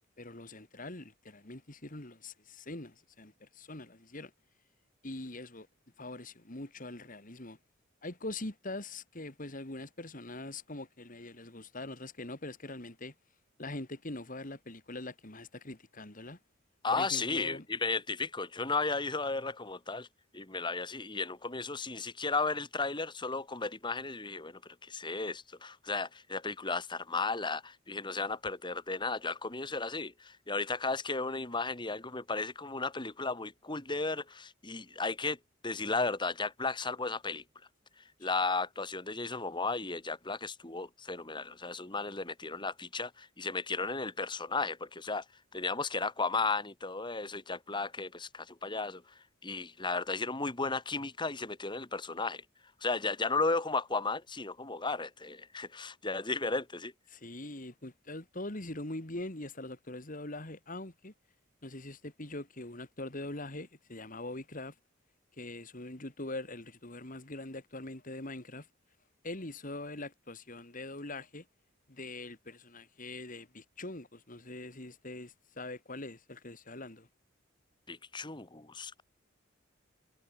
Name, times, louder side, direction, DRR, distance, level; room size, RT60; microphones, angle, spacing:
voice 1, 0.2-4.3 5.0-5.7 6.0-7.6 8.0-13.1 13.6-16.4 16.9-17.7 57.1-61.1 61.6-64.7 65.4-68.7 69.2-71.4 71.9-77.1, left 2 dB, 40° left, 2.7 m, -43 dB
voice 2, 16.8-20.1 20.3-35.4 35.6-37.4 38.2-45.2 45.5-49.0 49.4-52.4 52.8-56.9 77.9-79.0, left 3 dB, 25° left, 2.0 m, -34 dB
head